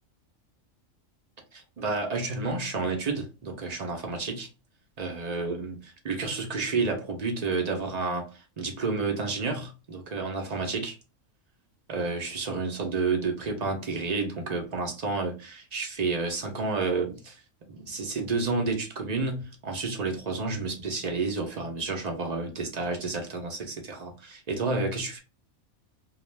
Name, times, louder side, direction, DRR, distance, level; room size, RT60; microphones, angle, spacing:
voice 1, 1.5-4.5 5.0-11.0 11.9-17.4 17.7-25.2, right 3 dB, 45° right, 0.6 m, -30 dB
2.4 x 2.2 x 3.1 m
omnidirectional pair, 1.3 m